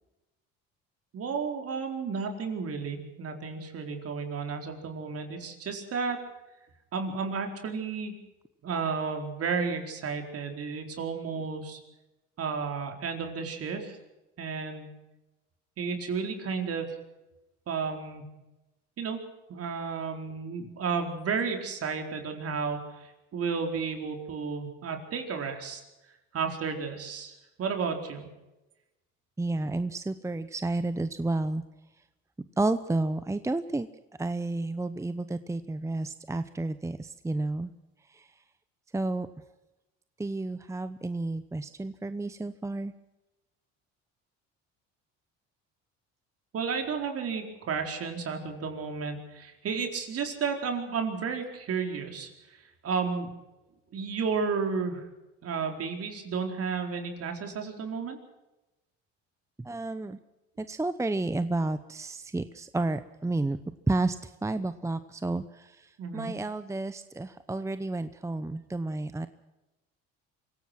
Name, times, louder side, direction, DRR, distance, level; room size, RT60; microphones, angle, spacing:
voice 1, 1.1-6.2 6.9-8.1 8.6-11.8 12.4-14.0 14.4-14.9 15.8-16.9 17.7-18.3 19.0-19.2 19.5-25.8 26.3-28.3 46.5-52.3 52.8-53.3 53.9-55.0 55.4-58.2 66.0-66.3, right 5 dB, 50° right, 4 dB, 4.4 m, -32 dB
voice 2, 29.4-31.6 32.6-33.9 34.2-37.7 38.1-38.3 38.9-39.3 40.2-42.9 59.6-60.2 60.6-69.3, right 2 dB, 10° right, 12 dB, 0.8 m, -31 dB
25.5 x 17.0 x 6.2 m, 0.99 s
cardioid pair, 95°, 30 cm